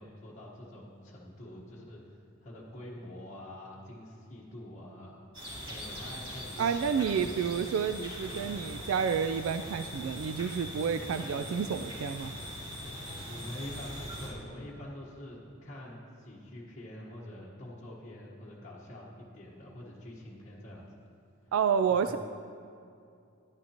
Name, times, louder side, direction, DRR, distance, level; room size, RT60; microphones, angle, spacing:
voice 1, 0.0-5.2 5.6-7.3 13.3-20.9 21.9-22.2, left 1 dB, 35° left, -7 dB, 1.3 m, -46 dB
sound 1, 5.3-14.3, equal, 25° right, 2.5 m, -41 dB
voice 2, 6.6-12.3 21.5-22.2, right 7 dB, 70° right, 10 dB, 0.3 m, -30 dB
13.5 x 10.5 x 2.9 m, 2.5 s
head